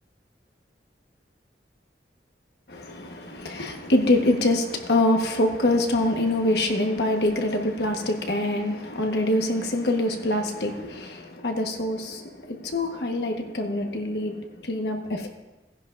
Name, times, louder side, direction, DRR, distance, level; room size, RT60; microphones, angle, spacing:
voice 1, 2.7-15.3, left 1 dB, 70° left, 1.3 m, -25 dB
17.5 x 10.5 x 2.5 m
head